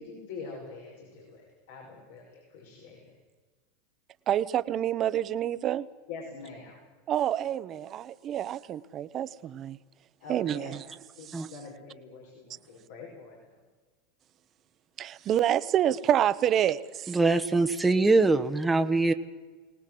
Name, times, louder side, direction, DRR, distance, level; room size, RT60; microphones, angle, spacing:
voice 1, 0.0-3.1 6.1-6.8 10.2-10.8 11.2-13.6, left 4 dB, 75° left, -3 dB, 6.0 m, -45 dB
voice 2, 4.3-5.9 7.1-9.8 10.3-10.8 11.3-11.5 15.0-17.2, right 11 dB, 40° right, 15 dB, 1.0 m, -28 dB
voice 3, 17.1-19.1, right 3 dB, 10° right, 6 dB, 1.2 m, -23 dB
22.5 x 19.0 x 7.9 m, 1.4 s
hypercardioid pair, 105°, 0 cm